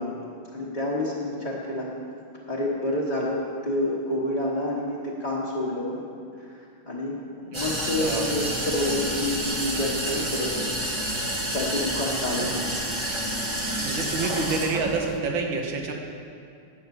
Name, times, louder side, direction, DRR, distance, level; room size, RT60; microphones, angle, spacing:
voice 1, 0.0-1.9 2.5-6.0 6.9-7.2 7.5-10.6 11.5-12.5, left 1 dB, 25° left, -6 dB, 1.4 m, -28 dB
sound 1, 7.5-15.2, right 1 dB, 15° right, 1.1 m, -29 dB
voice 2, 7.5-8.3 12.4-12.6 13.8-15.9, right 4 dB, 70° right, 2 dB, 2.0 m, -29 dB
10.5 x 8.9 x 7.2 m, 2.5 s
omnidirectional pair, 2.3 m